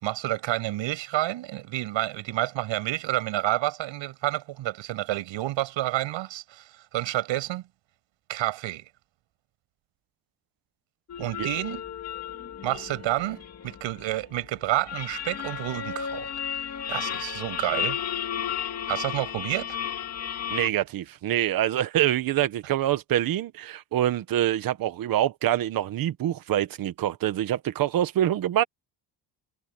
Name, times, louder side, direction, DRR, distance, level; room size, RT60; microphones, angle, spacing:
voice 1, 0.0-7.6 8.3-8.8 11.2-11.8 12.6-16.3 16.9-18.0 18.9-19.8, right 16 dB, 90° right, 7.6 m, -29 dB
sound 1, 11.1-20.7, left 9 dB, 35° left, 2.6 m, -34 dB
voice 2, 20.5-28.6, right 12 dB, 50° right, 1.2 m, -25 dB
cardioid pair, 180°, 44 cm